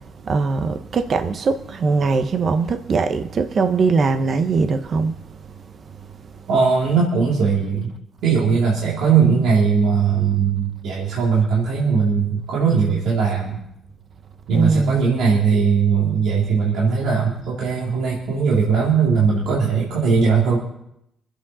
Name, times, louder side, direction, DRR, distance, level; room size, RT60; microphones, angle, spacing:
voice 1, 0.3-5.1 14.5-15.0, right 4 dB, 50° right, 1.1 m, -20 dB
voice 2, 6.5-7.9 8.2-13.6 14.5-20.6, right 5 dB, 85° right, 2.6 m, -19 dB
23.5 x 8.4 x 4.2 m
cardioid pair, 90°, 0 cm